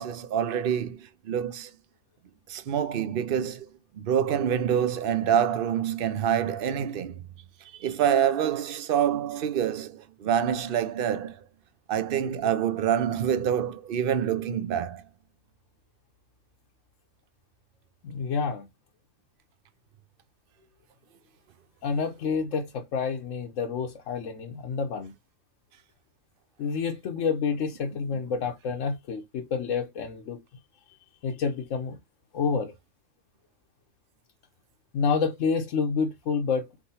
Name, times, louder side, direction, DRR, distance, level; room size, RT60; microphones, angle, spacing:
voice 1, 0.0-1.7 2.5-3.7 4.0-7.2 7.8-11.4 11.9-15.0, right 9 dB, 50° right, 0.8 m, -26 dB
voice 2, 18.0-18.7 21.8-25.1 26.6-30.4 30.9-31.0 31.2-32.0 32.3-32.7 34.9-36.7, left 5 dB, 75° left, 1.1 m, -28 dB
4.7 x 3.6 x 2.8 m
omnidirectional pair, 1.3 m